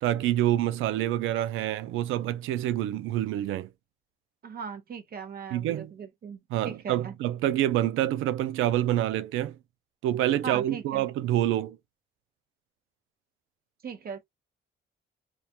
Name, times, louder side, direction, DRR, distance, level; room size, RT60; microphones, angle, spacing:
voice 1, 0.0-3.7 5.5-5.9 6.5-9.6 10.0-11.8, right 13 dB, 90° right, 0.4 m, -27 dB
voice 2, 4.4-7.1 10.4-11.1 13.8-14.2, right 6 dB, 50° right, 0.8 m, -39 dB
2.4 x 2.2 x 2.7 m
cardioid pair, 90°, 20 cm